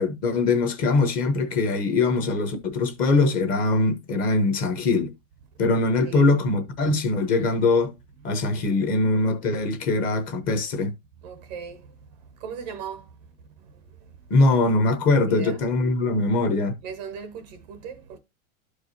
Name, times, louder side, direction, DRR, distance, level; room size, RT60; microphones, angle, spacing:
voice 1, 0.0-5.1 5.6-7.9 8.2-10.9 14.3-16.7, left 3 dB, 20° left, 0.9 m, -22 dB
voice 2, 6.0-6.4 11.2-11.9 12.4-13.2 13.6-13.8 15.3-15.6 16.8-18.2, right 6 dB, 30° right, 0.6 m, -37 dB
12.5 x 4.8 x 2.7 m
supercardioid pair, 175°, 42 cm